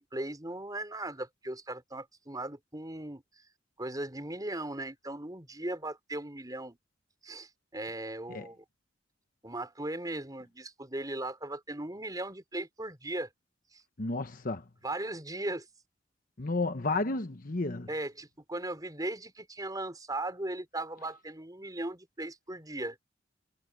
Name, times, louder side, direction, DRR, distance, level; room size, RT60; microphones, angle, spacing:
voice 1, 0.0-3.2 3.8-6.8 7.2-8.6 9.4-13.3 13.7-13.8 14.8-15.7 17.9-23.0, right 1 dB, 20° right, 4.8 m, -38 dB
voice 2, 14.0-14.6 16.4-17.9, left 3 dB, 45° left, 1.1 m, -32 dB
head